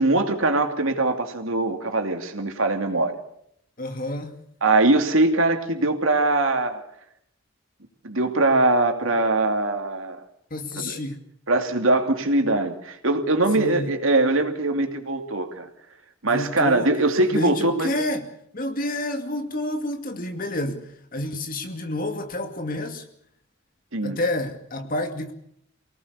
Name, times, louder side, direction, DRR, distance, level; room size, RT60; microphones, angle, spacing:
voice 1, 0.0-3.2 4.6-6.8 8.0-10.2 10.7-11.0 11.5-15.7 16.2-17.9 23.9-24.2, right 2 dB, 75° right, 2.7 m, -22 dB
voice 2, 3.8-4.4 10.5-11.2 13.6-13.9 16.3-18.3 18.5-23.1 24.0-25.3, left 1 dB, 40° left, 2.4 m, -29 dB
25.5 x 18.0 x 6.8 m
head